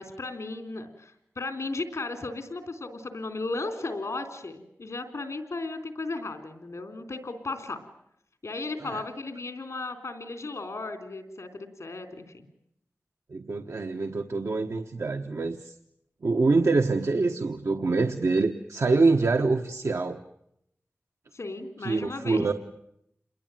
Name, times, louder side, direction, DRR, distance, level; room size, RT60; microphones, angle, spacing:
voice 1, 0.0-7.8 8.4-12.5 21.3-22.5, left 3 dB, 85° left, 8 dB, 3.7 m, -35 dB
voice 2, 13.3-15.7 16.2-20.2 21.8-22.5, right 3 dB, 90° right, 4 dB, 1.2 m, -25 dB
28.5 x 22.0 x 9.2 m, 0.77 s
wide cardioid pair, 55°, 5 cm